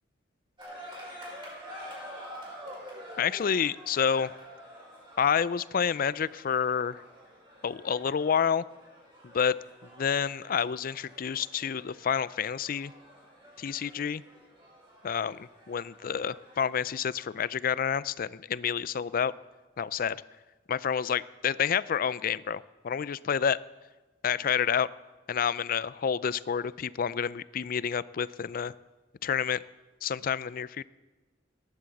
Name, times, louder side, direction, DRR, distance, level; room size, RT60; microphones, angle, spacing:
sound 1, 0.6-17.4, equal, 30° right, 4.8 m, -48 dB
voice 1, 3.2-4.3 5.2-7.0 7.6-8.6 9.3-9.5 10.0-12.9 13.6-14.2 15.0-19.3 19.8-20.2 20.7-23.6 24.2-24.9 25.3-28.7 29.2-29.6 30.0-30.8, left 7 dB, 50° left, 18 dB, 0.4 m, -29 dB
16.5 x 10.5 x 7.1 m, 1.2 s
head